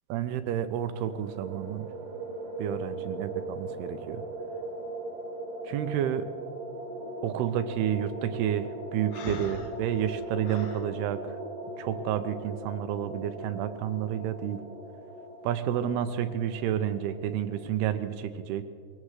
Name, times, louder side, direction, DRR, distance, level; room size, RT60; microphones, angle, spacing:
voice 1, 0.1-1.9 2.6-4.2 5.6-6.3 7.2-11.4 11.8-14.6 15.4-18.6, right 10 dB, 80° right, 10 dB, 2.6 m, -30 dB
sound 1, 0.9-17.8, right 2 dB, 60° right, 2.7 m, -40 dB
Breathing, 9.1-10.9, left 4 dB, 70° left, 2.9 m, -40 dB
22.5 x 18.0 x 3.2 m, 2.2 s
omnidirectional pair, 4.8 m